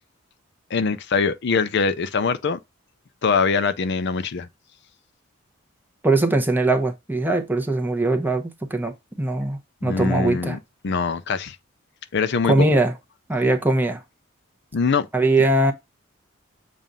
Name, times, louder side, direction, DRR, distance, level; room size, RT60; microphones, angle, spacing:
voice 1, 0.7-2.6 3.2-4.5 9.8-10.6 10.8-11.6 12.1-12.7 14.7-15.1, left 5 dB, 55° left, 0.5 m, -23 dB
voice 2, 6.0-8.4 8.7-10.6 12.5-12.9 13.3-14.0 15.1-15.7, right 2 dB, 10° right, 0.8 m, -21 dB
7.3 x 2.5 x 5.3 m
head